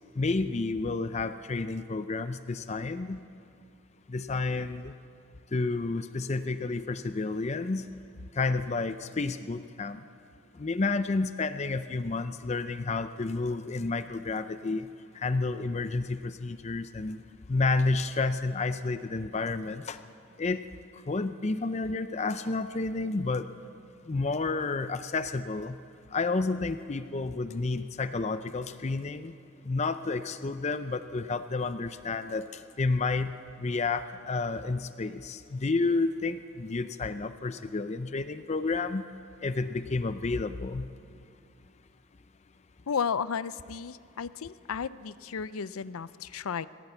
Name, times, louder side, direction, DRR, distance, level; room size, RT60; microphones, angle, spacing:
voice 1, 0.2-3.2 4.1-4.9 5.5-7.9 8.4-10.0 10.6-14.9 15.2-17.2 17.5-20.0 20.4-20.6 21.1-23.5 24.1-25.8 26.1-29.3 29.7-33.3 33.6-39.1 39.4-40.9, left 3 dB, 30° left, 11 dB, 0.5 m, -30 dB
voice 2, 42.9-46.7, left 6 dB, 85° left, 16 dB, 0.5 m, -33 dB
19.5 x 17.0 x 8.0 m, 2.5 s
head